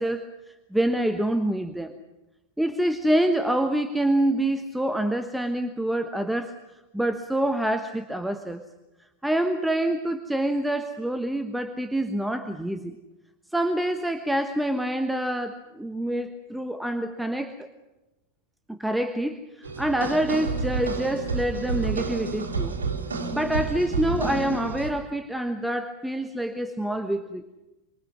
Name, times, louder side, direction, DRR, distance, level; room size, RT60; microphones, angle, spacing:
voice 1, 0.0-1.9 2.6-6.6 6.9-8.6 9.2-13.0 13.5-17.7 18.7-22.8 23.3-27.4, right 1 dB, 5° right, 8 dB, 1.2 m, -26 dB
sound 1, 19.6-24.9, right 4 dB, 70° right, 3.8 m, -30 dB
26.0 x 25.0 x 6.1 m, 1.0 s
figure-of-eight pair, 90°, 0 cm